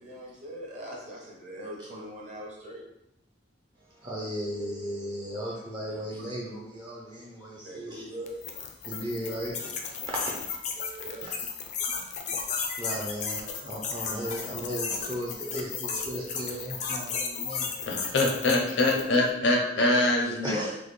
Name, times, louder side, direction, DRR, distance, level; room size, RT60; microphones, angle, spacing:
voice 1, 0.0-2.8 5.8-6.0 7.6-8.3 11.0-11.3 18.5-18.6 18.9-19.1 19.8-19.9, equal, 45° right, -3 dB, 0.9 m, -41 dB
voice 2, 3.9-8.2 8.8-9.7 10.0-10.3 10.8-11.3 12.5-17.7 20.4-20.8, equal, 25° right, -4 dB, 0.5 m, -36 dB
sound 1, 8.3-19.2, left 6 dB, 40° left, 0.4 m, -34 dB
voice 3, 17.9-20.6, left 2 dB, 85° left, 0 dB, 0.7 m, -24 dB
3.8 x 2.1 x 3.2 m, 0.84 s
head